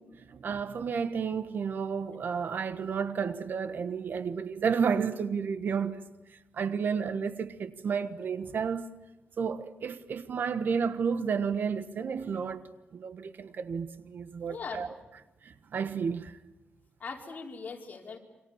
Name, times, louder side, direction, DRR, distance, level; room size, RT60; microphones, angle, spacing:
voice 1, 0.2-6.0 6.5-8.9 9.4-14.9 15.4-16.3, right 6 dB, 65° right, 1.4 m, -31 dB
voice 2, 14.5-14.8 17.0-18.2, left 5 dB, 50° left, 4.7 m, -40 dB
28.5 x 26.0 x 7.3 m
wide cardioid pair, 110°, 4 cm